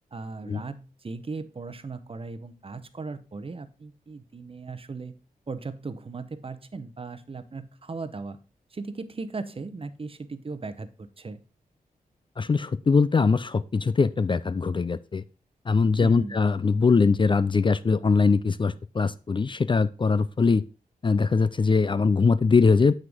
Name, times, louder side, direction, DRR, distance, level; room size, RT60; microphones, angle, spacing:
voice 1, 0.1-5.1 5.5-8.4 8.7-11.4 16.0-16.4, right 4 dB, 40° right, 11 dB, 0.8 m, -37 dB
voice 2, 12.4-15.2 15.7-20.6 21.0-22.9, left 4 dB, 35° left, 15 dB, 0.4 m, -22 dB
7.7 x 6.1 x 3.5 m, 0.34 s
cardioid pair, 70°, 15 cm